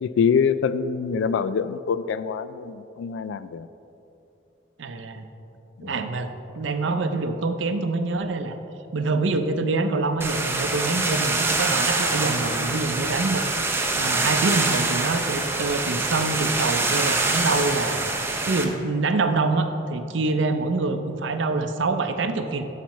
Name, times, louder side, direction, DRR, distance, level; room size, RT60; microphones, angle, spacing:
voice 1, 0.0-3.7 5.8-6.0, left 6 dB, 80° left, 14 dB, 0.3 m, -25 dB
voice 2, 4.8-5.3 5.8-8.5 8.9-18.0 18.5-22.7, right 3 dB, 80° right, 8 dB, 0.5 m, -25 dB
sound 1, 10.2-18.6, right 3 dB, 15° right, 0.6 m, -25 dB
11.5 x 5.9 x 3.0 m, 2.9 s
head